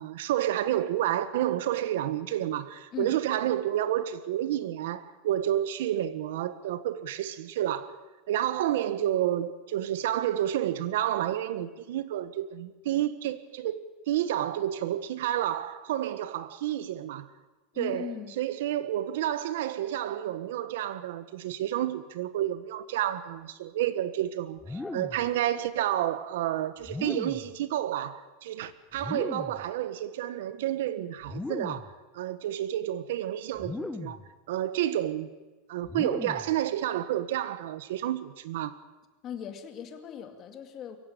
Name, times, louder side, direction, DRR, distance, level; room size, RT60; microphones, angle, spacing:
voice 1, 0.0-7.9 8.3-13.8 14.1-17.3 17.8-34.2 34.5-35.3 35.7-38.8, right 12 dB, 80° right, 1.4 m, -30 dB
voice 2, 17.7-18.4 39.2-41.0, left 9 dB, 30° left, 2.2 m, -39 dB
Warm analog swipes, 24.6-25.3 26.8-27.6 28.9-29.7 31.2-31.9 33.6-34.3 35.8-36.6, left 2 dB, 5° left, 1.0 m, -37 dB
23.0 x 16.0 x 8.8 m
supercardioid pair, 155°, 0 cm